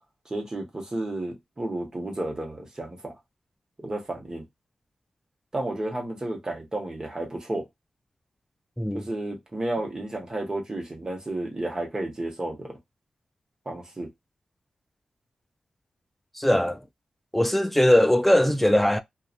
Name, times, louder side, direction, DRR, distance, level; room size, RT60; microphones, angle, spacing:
voice 1, 0.3-3.1 3.8-4.4 5.5-7.7 8.9-12.8 13.6-14.1, right 1 dB, 30° right, 1.2 m, -32 dB
voice 2, 8.8-9.1 16.4-16.8 17.3-19.0, left 1 dB, 5° left, 0.4 m, -20 dB
2.7 x 2.4 x 2.5 m
cardioid pair, 65°, 2 cm